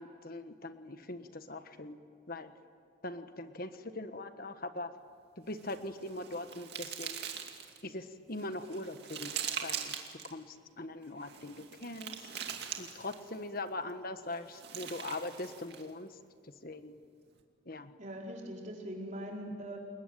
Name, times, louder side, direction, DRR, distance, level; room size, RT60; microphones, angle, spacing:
voice 1, 0.0-2.0 2.3-2.5 3.0-4.9 5.4-7.3 7.8-10.0 10.2-12.2 12.8-16.2 16.4-17.0 17.6-17.9, left 2 dB, 45° left, 9 dB, 1.4 m, -41 dB
sound 1, 5.5-7.8 8.4-10.3 11.2-13.4 14.3-15.9, right 8 dB, 50° right, 2.6 m, -42 dB
voice 2, 18.0-19.8, equal, 35° right, -1 dB, 4.7 m, -41 dB
29.5 x 21.5 x 9.3 m, 2.1 s
head